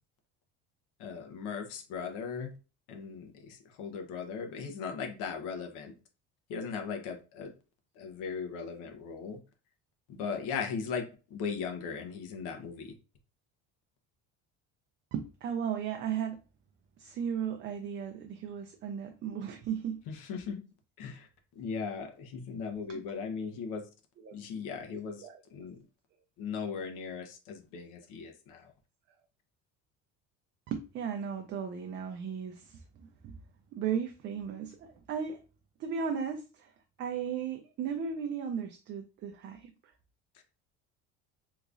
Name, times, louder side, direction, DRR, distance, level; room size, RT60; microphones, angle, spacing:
voice 1, 1.0-2.5 2.9-5.9 6.5-7.5 8.0-9.4 10.1-12.9 20.1-20.6 21.0-21.3 21.6-23.9 24.3-25.8 26.4-28.7 40.3-40.4, left 5 dB, 85° left, 0.9 m, -38 dB
voice 2, 15.1-16.4 17.0-20.0 22.9-23.0 24.2-24.3 25.2-25.4 30.7-33.4 33.7-35.4 35.8-36.7 37.0-39.7, right 7 dB, 40° right, 0.4 m, -36 dB
3.5 x 3.0 x 2.5 m
cardioid pair, 160°, 30 cm